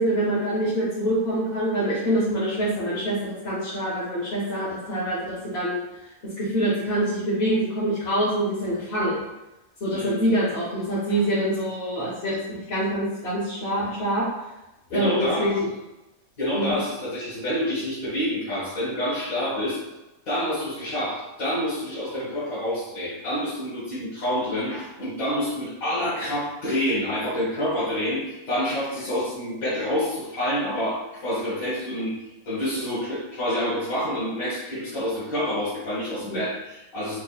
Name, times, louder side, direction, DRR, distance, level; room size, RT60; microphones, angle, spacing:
voice 1, 0.0-5.8 6.4-9.2 9.8-14.3 14.9-15.7 16.5-16.7 36.3-36.4, right 1 dB, 50° left, -9 dB, 1.1 m, -25 dB
voice 2, 9.9-10.2 11.1-11.2 14.9-15.6 16.4-19.8 20.3-32.2 32.4-37.2, equal, 75° left, -10 dB, 1.6 m, -27 dB
4.5 x 2.9 x 2.3 m, 1.0 s
omnidirectional pair, 1.5 m